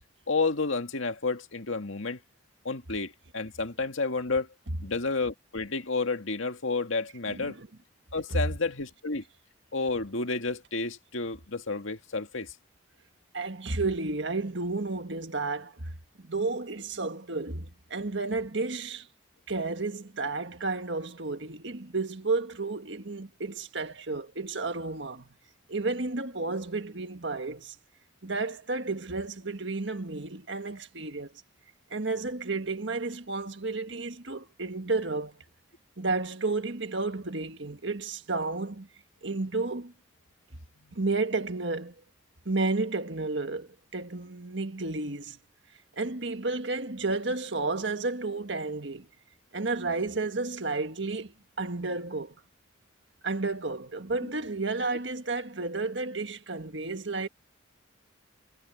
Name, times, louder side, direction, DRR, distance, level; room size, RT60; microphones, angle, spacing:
voice 1, 0.3-2.2 2.6-4.5 4.8-7.6 8.1-9.2 9.7-12.5, left 3 dB, 75° left, 2.0 m, -30 dB
voice 2, 7.3-7.7 8.3-8.4 13.3-15.9 16.2-19.1 19.5-25.3 25.7-27.8 28.2-31.3 31.9-35.4 36.0-38.9 39.2-39.9 40.9-41.9 42.5-45.4 46.0-49.1 49.5-52.4 53.2-57.3, right 3 dB, 60° right, 1.7 m, -32 dB
head